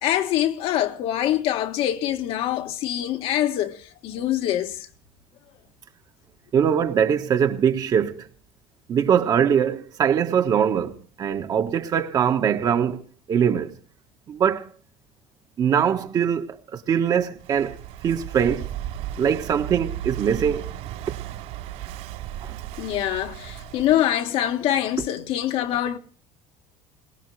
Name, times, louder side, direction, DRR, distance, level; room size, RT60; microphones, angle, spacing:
voice 1, 0.0-3.8 4.0-4.8 22.8-26.0, left 12 dB, 55° left, 1.5 m, -24 dB
voice 2, 6.5-8.3 8.9-13.7 14.3-14.7 15.6-17.8 18.0-18.7 19.2-20.7 22.4-22.6, right 8 dB, 35° right, 1.4 m, -22 dB
Walk footsteps / Wind / Waves surf, 17.4-24.0, right 12 dB, 70° right, 4.6 m, -35 dB
22.0 x 19.5 x 3.3 m
cardioid pair, 155°, 12 cm